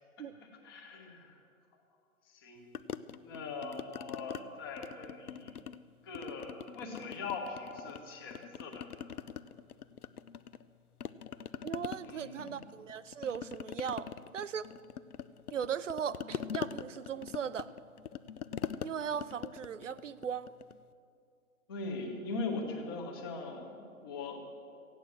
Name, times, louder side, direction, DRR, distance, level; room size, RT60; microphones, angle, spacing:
voice 1, 0.6-1.4 2.3-2.6 3.2-5.5 6.0-8.9 12.0-12.5 21.7-24.4, left 3 dB, 15° left, 2 dB, 1.0 m, -41 dB
sound 1, 2.7-4.4 4.8-5.8 6.1-8.0 8.3-10.7 11.0-20.8, left 8 dB, 90° left, 0.7 m, -43 dB
voice 2, 11.6-14.7 15.5-17.7 18.8-20.5, right 8 dB, 60° right, 16 dB, 0.6 m, -38 dB
15.5 x 9.2 x 7.7 m, 2.3 s
hypercardioid pair, 160°, 43 cm